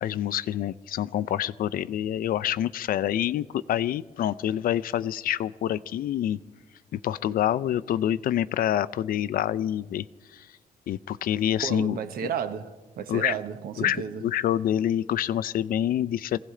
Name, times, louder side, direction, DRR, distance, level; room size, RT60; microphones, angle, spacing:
voice 1, 0.0-6.4 6.9-10.1 10.3-10.5 10.9-12.3 13.1-13.3 13.8-16.4, left 11 dB, 65° left, 0.4 m, -27 dB
voice 2, 11.6-14.2, right 8 dB, 75° right, 1.0 m, -33 dB
23.0 x 16.5 x 3.8 m
cardioid pair, 130°, 16 cm